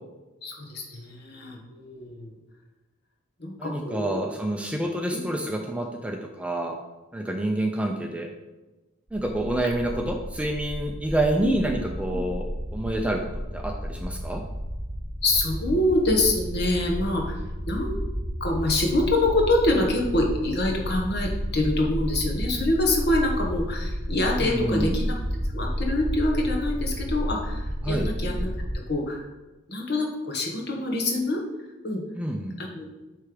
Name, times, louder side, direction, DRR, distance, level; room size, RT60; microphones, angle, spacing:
voice 1, 0.4-2.3 3.4-4.2 5.1-5.2 9.6-9.7 11.4-11.6 15.2-17.4 17.7-18.0 18.4-25.2 25.5-28.5 28.9-29.3 29.7-31.4 31.8-32.0 32.6-32.8, left 2 dB, 50° left, 1 dB, 1.3 m, -25 dB
voice 2, 3.6-6.8 7.1-8.3 9.1-12.4 12.7-13.2 13.5-14.4 24.4-25.0 27.8-28.1 32.2-32.6, right 1 dB, 5° right, 2 dB, 0.4 m, -28 dB
sound 1, 9.1-28.7, equal, 25° right, 1.7 m, -31 dB
8.1 x 3.3 x 5.1 m, 1.1 s
head